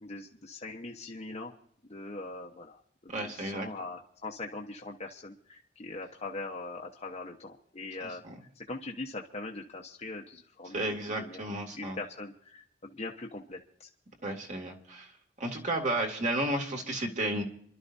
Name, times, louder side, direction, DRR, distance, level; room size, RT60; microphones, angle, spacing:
voice 1, 0.0-1.5 1.8-2.8 3.2-8.2 8.6-13.9, left 2 dB, 35° left, -1 dB, 1.0 m, -41 dB
voice 2, 3.1-3.7 8.2-8.4 10.7-12.0 14.2-15.1 15.4-17.4, right 1 dB, 40° right, 2 dB, 2.5 m, -32 dB
28.0 x 12.0 x 2.7 m, 0.62 s
head